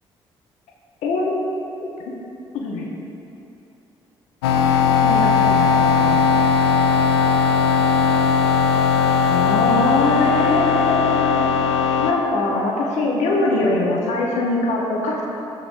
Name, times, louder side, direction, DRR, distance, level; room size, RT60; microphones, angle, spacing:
voice 1, 1.0-1.3 1.8-1.9 2.5-2.9 5.0-6.5 9.3-11.5 12.0-15.2, left 2 dB, 55° left, -2 dB, 1.1 m, -22 dB
sound 1, 4.4-12.1, left 6 dB, 70° left, 0.4 m, -18 dB
13.0 x 7.4 x 2.6 m, 2.9 s
figure-of-eight pair, 45°, 14 cm